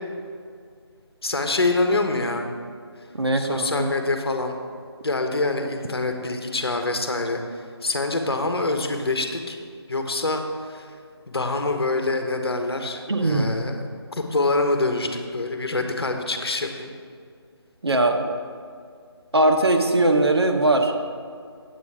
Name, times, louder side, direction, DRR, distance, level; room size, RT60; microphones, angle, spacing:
voice 1, 1.2-2.5 3.3-4.6 5.0-9.6 9.9-10.9 11.3-13.8 14.1-16.9, left 2 dB, 60° left, 5 dB, 1.2 m, -25 dB
voice 2, 3.1-3.9 13.1-13.5 17.8-18.3 19.3-21.0, right 2 dB, 70° right, 4 dB, 1.1 m, -20 dB
8.4 x 8.3 x 4.9 m, 2.2 s
figure-of-eight pair, 160°, 14 cm